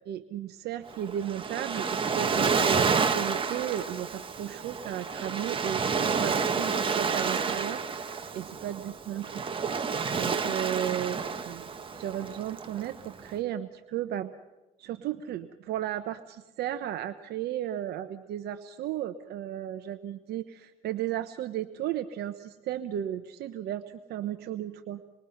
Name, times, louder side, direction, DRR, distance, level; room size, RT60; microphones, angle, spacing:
voice 1, 0.1-9.9 10.1-11.7 11.9-14.3 14.8-25.0, right 11 dB, 75° right, 9 dB, 0.9 m, -35 dB
Waves surf, 0.9-13.3, right 5 dB, 30° right, 1.5 m, -30 dB
26.5 x 21.5 x 5.7 m, 1.0 s
cardioid pair, 110°, 17 cm